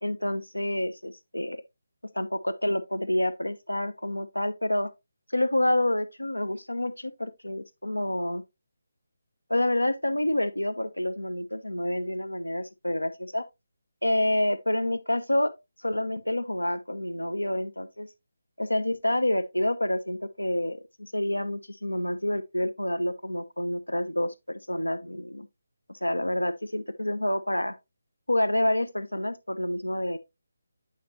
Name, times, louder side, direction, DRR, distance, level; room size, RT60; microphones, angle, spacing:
voice 1, 0.0-1.6 2.1-4.9 5.3-8.4 9.5-13.4 14.0-15.5 15.8-18.1 18.6-25.5 25.9-27.8 28.3-30.2, left 1 dB, 80° left, 0.9 m, -28 dB
8.5 x 5.1 x 2.7 m
figure-of-eight pair, 150°, 0 cm